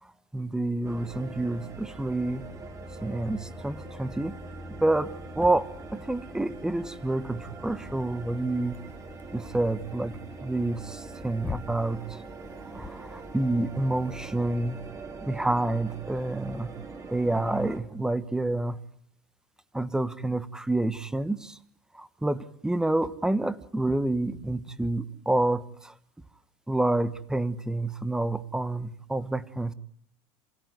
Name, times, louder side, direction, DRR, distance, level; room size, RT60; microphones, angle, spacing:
voice 1, 0.3-2.4 3.0-4.3 4.8-8.8 9.3-12.2 12.7-14.8 15.2-16.7 17.1-18.8 19.7-21.6 21.9-25.9 26.7-29.7, right 2 dB, 5° right, 15 dB, 1.2 m, -28 dB
sound 1, 0.8-17.8, right 3 dB, 25° right, 2.9 m, -42 dB
sound 2, 8.7-14.2, left 4 dB, 15° left, 1.7 m, -42 dB
28.0 x 16.0 x 9.3 m, 0.70 s
supercardioid pair, 125°, 12 cm